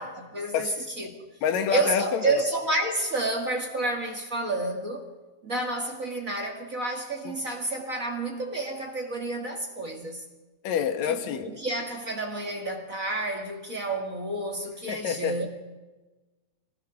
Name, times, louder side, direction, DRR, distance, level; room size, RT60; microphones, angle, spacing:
voice 1, 0.0-1.3 1.7-5.0 5.4-10.2 11.1-15.4, right 2 dB, 45° right, 1.1 m, -30 dB
voice 2, 1.4-2.3 10.6-11.5 14.9-15.3, left 8 dB, 60° left, 2.2 m, -27 dB
24.0 x 19.5 x 6.0 m
omnidirectional pair, 4.8 m